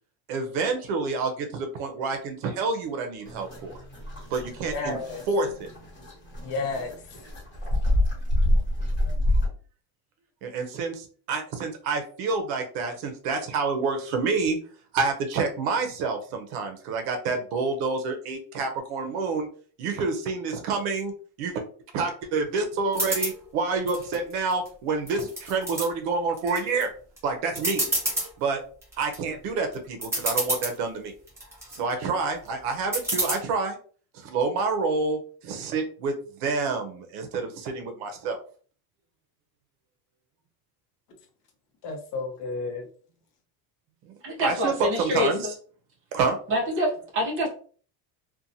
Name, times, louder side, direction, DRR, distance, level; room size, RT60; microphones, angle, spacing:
voice 1, 0.3-3.7 4.3-5.0 5.3-5.7 10.4-14.6 14.9-19.5 19.8-21.1 21.4-21.6 21.9-26.9 27.2-27.8 28.4-28.6 29.0-31.1 31.7-33.8 34.1-36.1 36.4-38.4 44.1-44.2 44.4-45.5 46.1-46.4, right 4 dB, 80° right, 0.7 m, -28 dB
sound 1, 3.2-9.5, left 1 dB, 25° left, 1.0 m, -27 dB
voice 2, 4.7-5.2 6.4-7.0 41.8-42.9, left 3 dB, 45° left, 0.7 m, -31 dB
sound 2, 22.9-23.4 23.9-24.7 25.1-25.9 26.4-26.8 27.2-27.3 27.6-28.3 28.8-29.2 29.7-29.8 30.0-30.8 31.3-31.8 32.9-33.3, right 1 dB, 5° right, 0.4 m, -28 dB
voice 3, 44.2-45.5 46.5-47.5, equal, 25° right, 0.8 m, -26 dB
2.7 x 2.2 x 2.6 m
cardioid pair, 165°, 46 cm